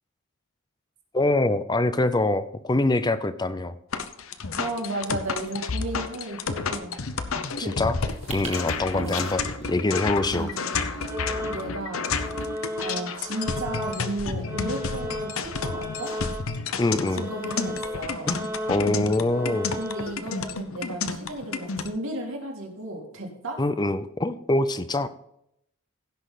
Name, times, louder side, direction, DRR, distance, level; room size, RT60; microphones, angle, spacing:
voice 1, 1.1-3.7 7.4-8.0 8.3-10.5 16.8-17.3 18.3-19.8 23.6-25.1, left 2 dB, 20° left, 12 dB, 0.4 m, -24 dB
sound 1, 3.9-21.9, left 4 dB, 75° left, 0.8 m, -31 dB
voice 2, 4.5-7.0 7.6-7.8 9.0-9.2 10.3-11.1 11.4-12.1 12.8-16.1 17.1-18.4 19.8-23.6, right 1 dB, 75° right, 0 dB, 2.6 m, -34 dB
sound 2, 7.9-20.1, right 5 dB, 30° right, 1.8 m, -49 dB
sound 3, 11.0-11.9 12.2-16.7 17.0-20.1, left 1 dB, 10° right, 1.9 m, -35 dB
16.0 x 6.3 x 4.1 m, 0.76 s
head